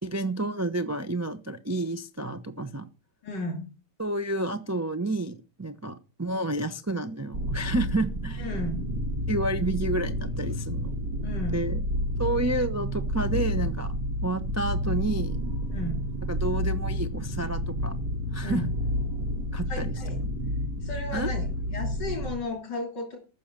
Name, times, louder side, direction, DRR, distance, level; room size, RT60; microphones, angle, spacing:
voice 1, 0.0-2.9 4.0-8.5 9.3-10.9 11.5-11.8 12.2-13.9 14.2-15.4 16.3-18.0 18.3-18.7 19.5-20.0 21.1-21.3, right 2 dB, 25° right, 8 dB, 0.3 m, -30 dB
voice 2, 3.2-3.6 8.4-8.8 11.2-11.7 15.7-16.0 18.4-18.6 19.7-20.2 20.8-23.2, left 2 dB, 85° left, 2 dB, 3.6 m, -34 dB
sound 1, 7.3-22.4, equal, 90° right, 3.5 m, -30 dB
14.0 x 6.5 x 7.4 m, 0.35 s
omnidirectional pair, 1.8 m